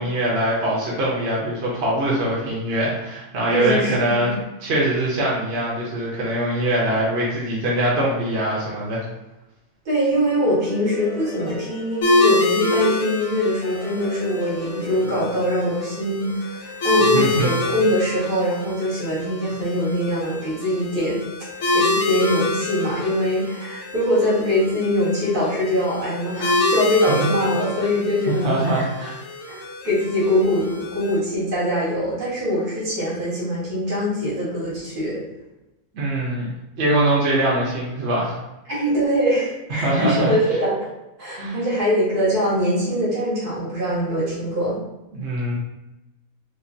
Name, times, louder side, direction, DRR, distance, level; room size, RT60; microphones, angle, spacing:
voice 1, 0.0-9.0 17.1-17.5 27.1-27.3 28.3-29.1 35.9-36.5 36.8-38.4 39.7-40.3 41.3-41.6 45.1-45.5, right 1 dB, 50° right, -6 dB, 1.0 m, -23 dB
voice 2, 3.5-4.4 9.9-21.2 21.7-29.1 29.4-35.2 38.7-40.8 41.2-44.8, equal, 90° right, -9 dB, 2.2 m, -23 dB
sound 1, 10.1-13.0 13.6-16.5, left 1 dB, 25° left, 0.9 m, -37 dB
sound 2, 12.0-31.2, left 2 dB, 75° left, 1.3 m, -26 dB
5.0 x 2.1 x 2.7 m, 0.97 s
omnidirectional pair, 1.6 m